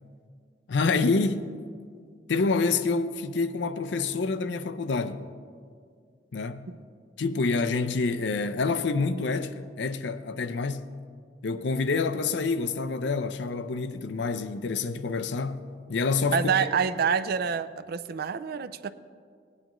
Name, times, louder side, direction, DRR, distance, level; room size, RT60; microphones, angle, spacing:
voice 1, 0.7-1.4 2.3-5.2 6.3-6.6 7.2-10.9 11.4-15.6 15.9-16.4, left 4 dB, 70° left, 0.5 m, -27 dB
voice 2, 16.3-18.9, right 6 dB, 55° right, 0.4 m, -27 dB
17.5 x 9.6 x 3.0 m
head